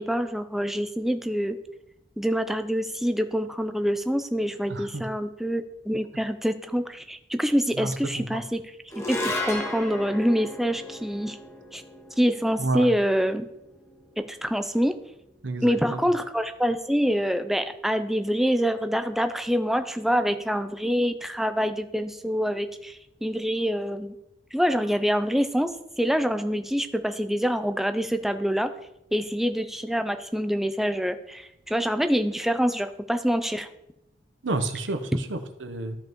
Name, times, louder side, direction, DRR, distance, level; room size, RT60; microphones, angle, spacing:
voice 1, 0.0-1.6 2.2-8.8 9.1-11.4 11.7-11.8 12.2-13.5 14.2-15.0 15.6-24.1 24.5-28.7 29.1-33.7, equal, ahead, 9 dB, 0.4 m, -26 dB
voice 2, 4.7-5.0 7.8-8.4 12.6-12.9 15.4-16.0 34.4-36.0, right 2 dB, 85° right, 8 dB, 0.9 m, -30 dB
sound 1, 8.9-15.4, left 1 dB, 15° left, 1.0 m, -35 dB
13.0 x 5.3 x 3.1 m, 0.85 s
head